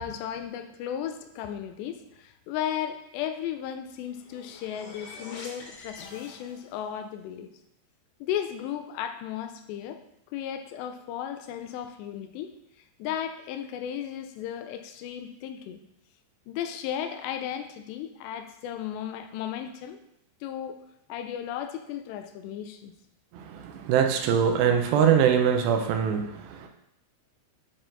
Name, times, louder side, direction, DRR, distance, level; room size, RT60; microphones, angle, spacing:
voice 1, 0.0-7.5 8.2-10.0 10.3-12.6 13.0-15.8 16.5-20.0 20.4-20.8 21.1-22.9, left 10 dB, 85° left, 8 dB, 2.7 m, -35 dB
sound 1, 3.9-6.9, left 3 dB, 65° left, 2.2 m, -46 dB
voice 2, 23.3-26.7, right 8 dB, 80° right, 4 dB, 2.8 m, -23 dB
8.8 x 4.3 x 3.9 m, 0.79 s
omnidirectional pair, 5.0 m